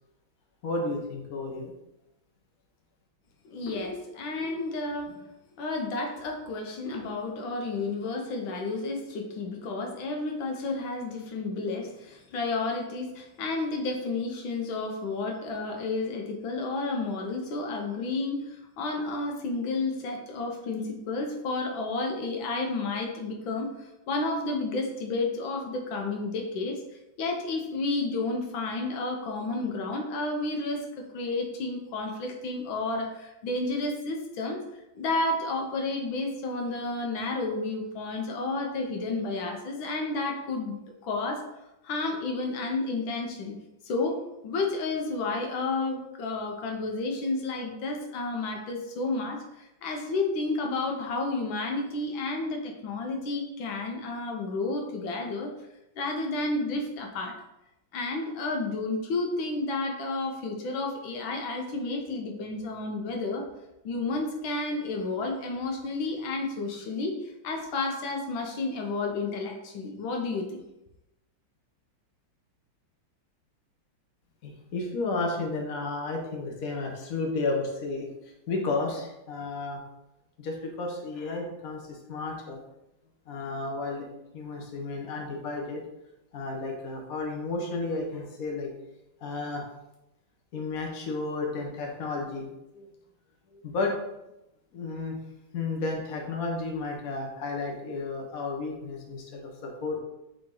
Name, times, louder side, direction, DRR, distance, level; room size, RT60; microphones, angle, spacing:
voice 1, 0.6-1.7 74.4-79.8 80.4-82.6 83.3-84.1 84.3-85.8 86.3-88.7 89.2-89.6 90.5-92.9 93.5-93.9 94.7-95.2 95.5-100.0, left 3 dB, 50° left, 0 dB, 1.5 m, -32 dB
voice 2, 3.5-5.2 5.6-26.8 27.2-34.6 34.9-41.4 41.8-43.6 43.8-55.5 56.0-57.3 57.9-63.5 63.8-70.6, left 3 dB, 80° left, 2 dB, 1.6 m, -31 dB
8.9 x 3.0 x 3.8 m, 0.90 s
omnidirectional pair, 2.1 m